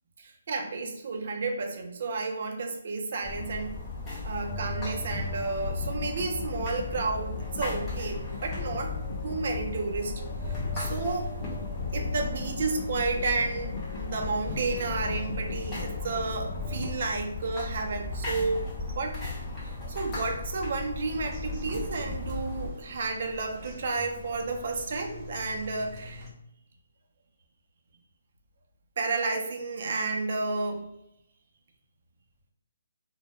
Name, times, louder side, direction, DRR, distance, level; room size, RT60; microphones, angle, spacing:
voice 1, 0.2-3.8 4.2-11.3 11.9-19.2 19.6-26.2 29.0-30.9, right 3 dB, 55° right, 3 dB, 0.5 m, -32 dB
sound 1, 3.2-22.7, left 2 dB, 15° left, 0.9 m, -37 dB
sound 2, 4.5-16.9, left 3 dB, 45° left, 0.4 m, -37 dB
Bird vocalization bird call bird song, 21.3-26.3, left 2 dB, 20° right, 0.8 m, -46 dB
2.1 x 2.1 x 3.0 m, 0.79 s
hypercardioid pair, 160°, 0 cm